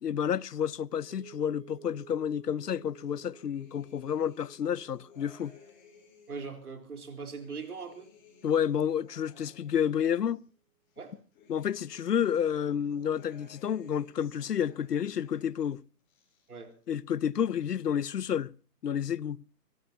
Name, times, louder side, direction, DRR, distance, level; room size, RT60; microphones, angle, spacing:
voice 1, 0.0-5.5 8.4-10.4 11.5-15.8 16.9-18.5 18.8-19.4, left 8 dB, 80° left, 0.8 m, -30 dB
sound 1, 1.1-9.4, right 13 dB, 20° right, 2.3 m, -57 dB
sound 2, 2.9-6.5 7.0-10.4 10.9-15.7 16.0-16.9 17.1-17.9, left 5 dB, 10° left, 4.2 m, -60 dB
voice 2, 6.3-8.1 11.0-11.2 16.5-16.7, right 5 dB, 65° right, 4.0 m, -41 dB
25.5 x 19.5 x 2.8 m
hypercardioid pair, 175°, 48 cm